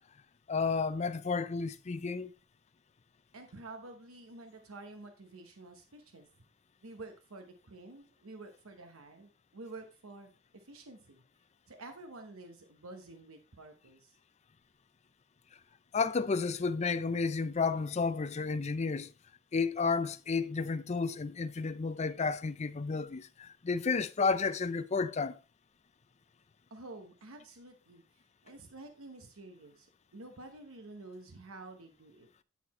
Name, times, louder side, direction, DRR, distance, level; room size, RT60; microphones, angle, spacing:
voice 1, 0.5-2.3 15.9-19.1 19.5-25.4, left 4 dB, 30° left, 0.4 m, -32 dB
voice 2, 3.3-6.3 6.8-11.2 11.7-14.2 26.7-28.0 28.4-32.3, right 2 dB, 80° right, 1.0 m, -50 dB
9.4 x 4.2 x 4.2 m
head